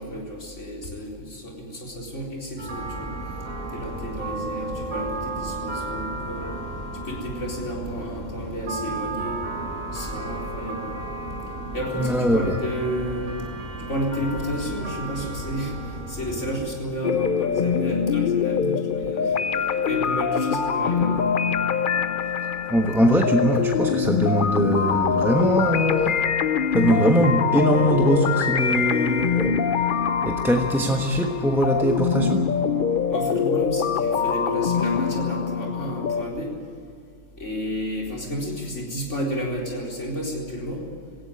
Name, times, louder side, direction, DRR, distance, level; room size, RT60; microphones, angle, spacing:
voice 1, 0.0-3.1 3.7-6.5 7.0-9.4 9.9-11.0 11.7-13.4 13.9-19.4 19.9-21.7 33.1-36.5 37.4-40.8, equal, 70° left, -2 dB, 4.6 m, -31 dB
sound 1, 2.6-16.7, right 2 dB, 35° right, 4.5 m, -33 dB
voice 2, 11.9-12.6 22.7-26.2 26.7-29.6 30.2-32.5, equal, ahead, 2 dB, 1.1 m, -21 dB
sound 2, 17.0-36.2, left 7 dB, 50° left, 0.8 m, -24 dB
18.0 x 16.0 x 9.9 m, 2.2 s
omnidirectional pair, 1.3 m